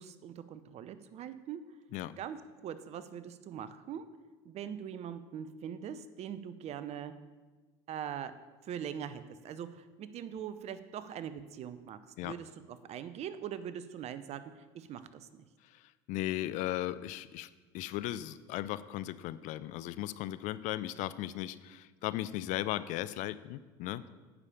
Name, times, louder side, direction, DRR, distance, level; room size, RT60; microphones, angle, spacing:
voice 1, 0.0-1.6 2.2-4.0 4.4-7.1 7.9-8.3 8.6-15.4, right 9 dB, 50° right, 13 dB, 0.7 m, -42 dB
voice 2, 15.6-24.0, left 14 dB, 60° left, 15 dB, 0.5 m, -37 dB
9.9 x 5.0 x 7.1 m, 1.3 s
hypercardioid pair, 75°, 14 cm